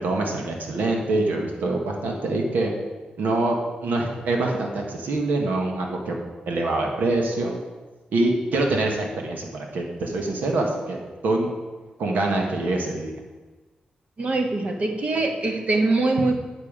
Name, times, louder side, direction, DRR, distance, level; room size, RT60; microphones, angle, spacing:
voice 1, 0.0-2.7 3.2-6.2 6.5-7.6 8.1-11.0 11.2-11.5 12.0-13.1, right 2 dB, 80° right, 1 dB, 1.6 m, -25 dB
voice 2, 14.2-16.3, right 2 dB, 50° right, 3 dB, 1.5 m, -23 dB
9.4 x 6.9 x 5.1 m, 1.3 s
cardioid pair, 75°, 3 cm